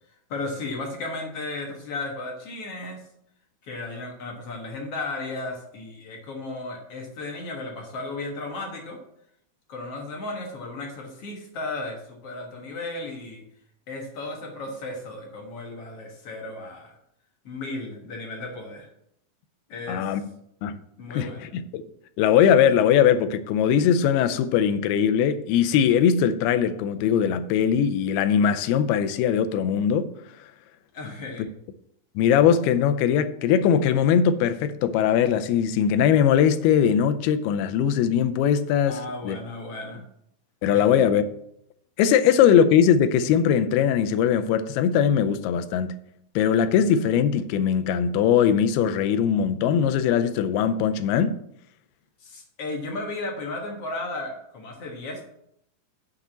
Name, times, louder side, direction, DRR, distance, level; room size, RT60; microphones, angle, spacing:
voice 1, 0.3-3.0 3.6-9.0 9.7-13.4 13.9-17.0 17.5-18.9 19.7-20.1 21.0-21.5 30.9-31.5 38.9-40.0 40.7-41.1 52.2-55.3, left 2 dB, 55° left, 1.8 m, -34 dB
voice 2, 19.9-20.2 20.6-20.8 21.1-21.8 22.2-30.1 32.2-39.4 40.6-41.2 42.0-45.9 46.4-51.4, left 8 dB, 90° left, 2.6 m, -21 dB
6.8 x 6.0 x 7.3 m
omnidirectional pair, 4.4 m